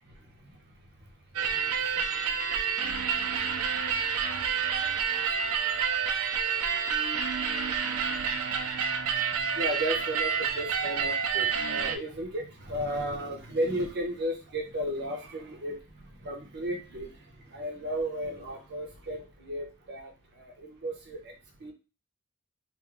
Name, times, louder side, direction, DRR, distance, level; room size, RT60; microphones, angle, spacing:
sound 1, 1.3-12.0, right 7 dB, 75° right, 0.5 m, -29 dB
voice 1, 1.5-2.3 9.5-21.3 21.6-21.7, right 1 dB, 55° right, 3 dB, 0.8 m, -34 dB
2.6 x 2.5 x 3.3 m, 0.32 s
head